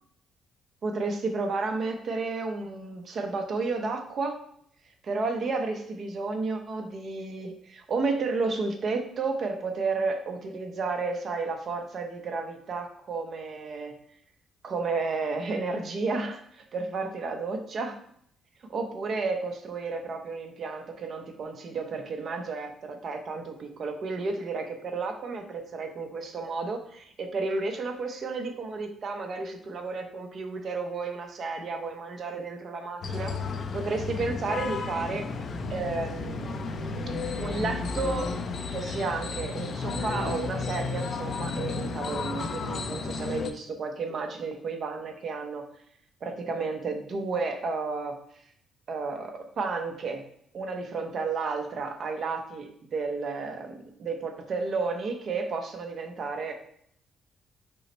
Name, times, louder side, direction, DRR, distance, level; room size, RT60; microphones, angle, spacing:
voice 1, 0.8-4.4 5.0-13.9 14.6-18.0 18.7-33.3 33.7-35.2 35.7-36.5 37.4-38.3 38.7-45.7 46.2-48.2 48.9-50.2 50.5-56.5, right 4 dB, 50° right, 4 dB, 0.7 m, -32 dB
sound 1, 33.0-43.5, left 4 dB, 50° left, 0.4 m, -33 dB
5.3 x 2.1 x 4.3 m, 0.67 s
cardioid pair, 115°, 0 cm